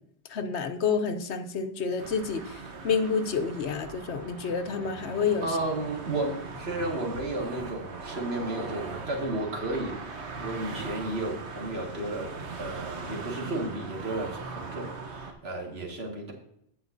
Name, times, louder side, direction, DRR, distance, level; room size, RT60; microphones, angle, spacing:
voice 1, 0.3-2.6 2.8-5.5, left 5 dB, 85° left, 8 dB, 1.1 m, -29 dB
sound 1, 2.0-15.3, right 4 dB, 85° right, 1.4 m, -40 dB
voice 2, 5.4-12.3 12.6-16.3, right 2 dB, 70° right, 0 dB, 2.1 m, -33 dB
16.5 x 5.7 x 2.6 m, 0.74 s
omnidirectional pair, 1.1 m